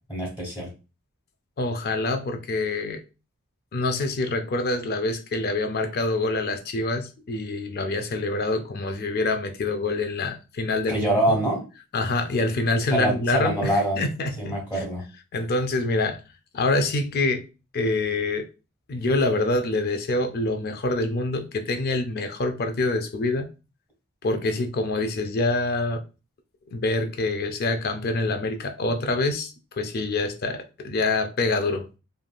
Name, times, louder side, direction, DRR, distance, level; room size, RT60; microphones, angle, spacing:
voice 1, 0.1-0.7 10.9-11.6 12.9-14.0 14.4-15.0, right 1 dB, 20° left, 1.2 m, -24 dB
voice 2, 1.6-3.0 3.7-11.4 11.9-14.6 15.3-16.2 16.5-17.4 17.7-18.5 18.9-23.5 24.2-26.0 26.7-31.9, left 2 dB, 45° left, 0.4 m, -26 dB
3.2 x 2.5 x 2.2 m
head